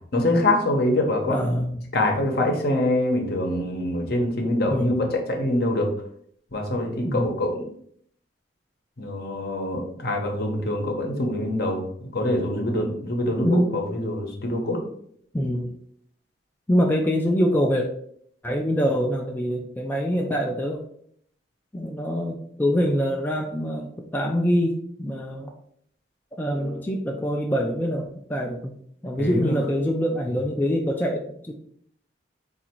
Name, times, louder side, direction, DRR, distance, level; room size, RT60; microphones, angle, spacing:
voice 1, 0.1-1.5 1.9-5.9 6.5-7.6 9.0-11.8 12.1-14.8 29.2-29.6, left 1 dB, 55° left, 2 dB, 0.9 m, -24 dB
voice 2, 1.3-1.8 4.6-5.1 7.0-7.3 13.4-13.7 15.3-15.7 16.7-17.9 18.4-20.8 21.7-25.5 26.4-28.0 28.3-28.7 29.0-31.5, equal, 10° left, 0 dB, 0.3 m, -24 dB
3.9 x 2.5 x 4.4 m, 0.65 s
head